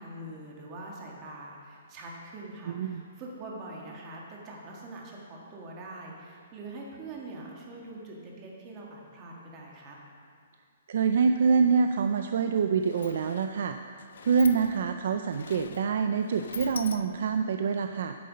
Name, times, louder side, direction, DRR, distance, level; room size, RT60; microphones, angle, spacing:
voice 1, 0.0-10.0, right 2 dB, 25° right, -2 dB, 1.6 m, -43 dB
voice 2, 2.7-3.0 10.9-13.8 14.2-18.2, right 5 dB, 60° right, 7 dB, 0.4 m, -26 dB
Sliding door, 12.2-12.3 12.5-17.5, left 7 dB, 75° left, 0.4 m, -44 dB
9.4 x 6.7 x 5.2 m, 2.1 s
hypercardioid pair, 160°, 0 cm